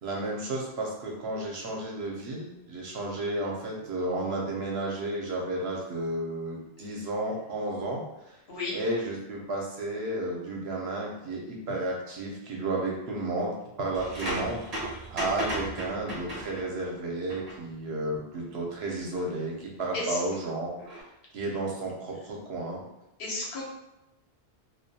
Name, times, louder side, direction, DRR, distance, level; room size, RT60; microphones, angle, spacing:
voice 1, 0.0-8.0 8.7-20.7 21.3-22.8, right 2 dB, 75° right, -1 dB, 0.9 m, -32 dB
sound 1, 13.9-16.9 17.3-17.6 19.1-19.2 20.8-21.0, right 1 dB, 40° right, 0.7 m, -35 dB
voice 2, 23.2-23.6, left 2 dB, 65° left, -4 dB, 0.9 m, -32 dB
2.3 x 2.2 x 2.7 m, 0.92 s
omnidirectional pair, 1.1 m